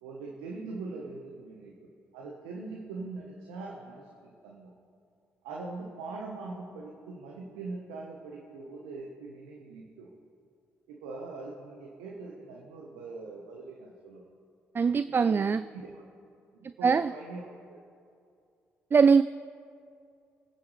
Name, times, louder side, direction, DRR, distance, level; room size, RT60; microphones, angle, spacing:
voice 1, 0.0-1.7 2.1-4.7 5.4-10.1 10.9-14.2 15.1-15.4 15.7-16.0 16.5-17.8, right 3 dB, 75° right, -1 dB, 1.4 m, -42 dB
voice 2, 14.7-15.6 16.8-17.1 18.9-19.2, right 5 dB, 30° right, 14 dB, 0.3 m, -22 dB
25.5 x 9.8 x 3.5 m, 2.4 s
hypercardioid pair, 45°, 7 cm